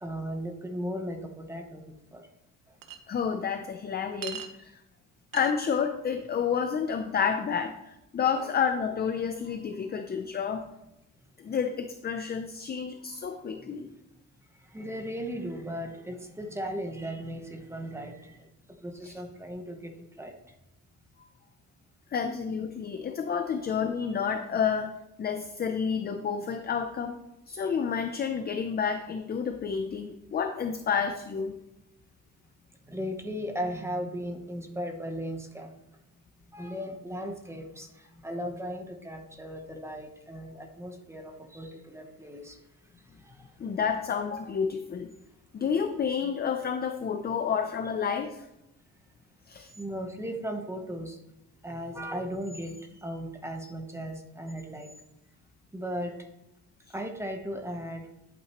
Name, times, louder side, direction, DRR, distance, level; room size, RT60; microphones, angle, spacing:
voice 1, 0.0-2.2 8.4-8.5 14.7-18.4 18.8-20.3 23.5-23.6 32.8-35.7 36.5-42.6 43.2-43.5 47.8-47.9 49.8-51.2 51.6-54.9 55.7-56.2 56.9-58.1, equal, 10° right, 4 dB, 0.9 m, -37 dB
Chink clink, 2.8-3.0 4.2-4.5 5.3-5.5, right 8 dB, 70° right, 1.1 m, -38 dB
voice 2, 3.1-4.7 5.3-10.6 11.4-13.9 19.0-19.1 22.1-27.2 27.5-31.6 43.6-45.1 45.5-48.5 49.5-49.7, left 6 dB, 30° left, 7 dB, 0.5 m, -30 dB
11.0 x 8.7 x 3.0 m, 0.89 s
cardioid pair, 170°, 34 cm